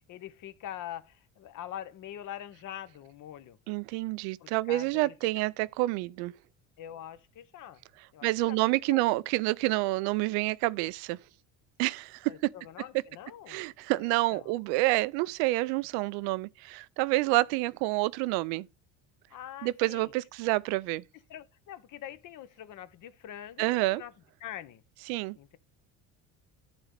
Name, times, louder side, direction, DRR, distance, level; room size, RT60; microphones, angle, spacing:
voice 1, 0.0-3.6 4.4-5.5 6.8-7.8 8.1-9.0 12.3-13.6 14.0-14.6 19.3-20.1 20.4-20.6 21.3-24.1 24.4-24.8 25.3-25.6, left 11 dB, 55° left, 1.1 m, -44 dB
voice 2, 3.7-6.3 8.2-11.2 11.8-12.5 13.5-18.7 19.6-21.0 23.6-24.0 25.1-25.4, right 20 dB, 85° right, 0.6 m, -28 dB
10.5 x 4.0 x 6.5 m
cardioid pair, 110°, 37 cm